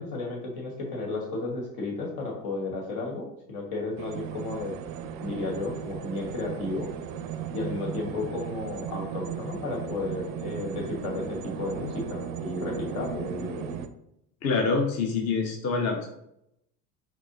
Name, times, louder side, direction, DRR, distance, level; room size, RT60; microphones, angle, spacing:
voice 1, 0.0-4.7 5.2-6.9 7.5-13.7, left 2 dB, 70° left, -1 dB, 1.4 m, -33 dB
sound 1, 4.0-13.9, right 8 dB, 60° right, 0.5 m, -36 dB
voice 2, 14.4-16.1, left 4 dB, 35° left, 2 dB, 0.6 m, -26 dB
4.6 x 2.8 x 2.6 m, 0.78 s
hypercardioid pair, 70°, 47 cm